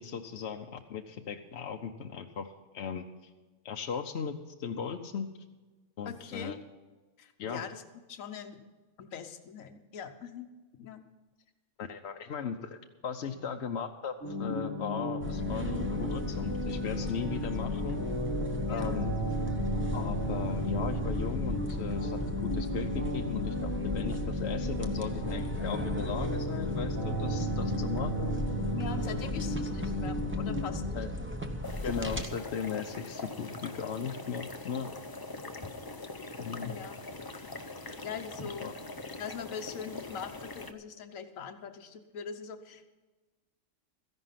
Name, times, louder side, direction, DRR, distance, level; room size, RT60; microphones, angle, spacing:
voice 1, 0.0-3.0 3.6-5.3 6.0-6.6 7.4-7.6 11.8-18.0 18.7-19.1 19.9-28.3 29.1-29.3 30.9-31.1 31.8-34.9 36.4-36.7 38.6-38.7, left 6 dB, 60° left, 4 dB, 0.9 m, -37 dB
voice 2, 6.0-6.5 7.2-7.8 8.1-8.6 9.0-10.5 10.8-11.0 18.7-18.9 28.7-31.0 36.6-37.0 38.0-38.7 39.2-42.9, left 7 dB, 85° left, 8 dB, 1.3 m, -42 dB
sound 1, 14.2-30.8, left 1 dB, 55° right, 3.4 m, -34 dB
sound 2, 15.2-32.3, equal, 10° right, 0.8 m, -36 dB
sound 3, 31.6-40.7, left 3 dB, 25° left, 0.5 m, -42 dB
14.0 x 11.0 x 5.8 m, 1.3 s
omnidirectional pair, 1.4 m